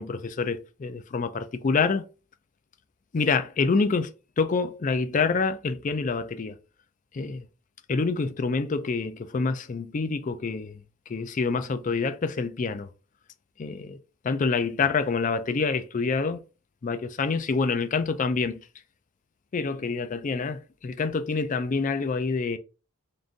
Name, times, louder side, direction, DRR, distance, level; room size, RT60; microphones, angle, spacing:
voice 1, 0.0-2.0 3.1-6.5 7.1-7.5 7.9-10.8 11.1-12.9 13.6-14.0 14.2-16.4 16.8-18.6 19.5-22.6, left 4 dB, 35° left, 0.4 m, -27 dB
3.7 x 2.5 x 3.8 m
head